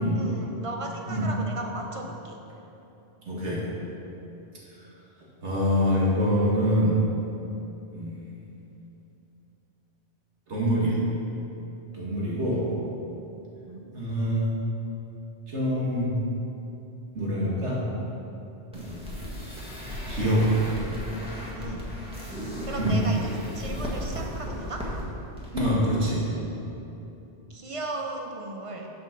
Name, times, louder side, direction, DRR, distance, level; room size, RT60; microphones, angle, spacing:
voice 1, 0.1-2.4 13.7-13.9 21.5-21.9 22.2-22.3 22.6-24.9 27.5-28.9, right 2 dB, 35° right, 2 dB, 0.6 m, -36 dB
voice 2, 3.3-3.6 5.4-7.1 7.9-8.2 10.5-11.0 11.9-12.7 13.9-14.5 15.5-16.2 17.1-17.8 18.7-19.0 20.1-20.5 22.8-23.0 25.5-26.3, equal, 85° right, -5 dB, 2.0 m, -25 dB
sound 1, 18.7-25.0 25.4-25.6 25.9-26.0, equal, 5° right, 1.4 m, -35 dB
6.5 x 5.9 x 5.8 m, 3.0 s
omnidirectional pair, 1.1 m